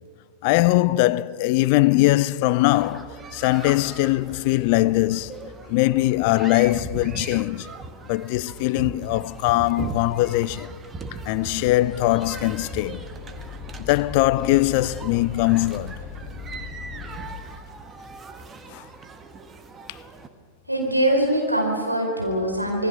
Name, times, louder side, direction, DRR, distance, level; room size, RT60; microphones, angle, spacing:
voice 1, 0.4-7.7 8.1-10.8 11.3-13.0 13.8-16.0 18.7-18.8, left 18 dB, 45° left, 0.5 m, -21 dB
sound 1, 2.7-20.3, right 3 dB, 20° right, 1.8 m, -39 dB
sound 2, 11.7-17.3, left 5 dB, 45° right, 7.6 m, -38 dB
voice 2, 20.7-22.9, right 1 dB, 90° right, 4.8 m, -23 dB
26.5 x 21.0 x 6.8 m
figure-of-eight pair, 90°, 0 cm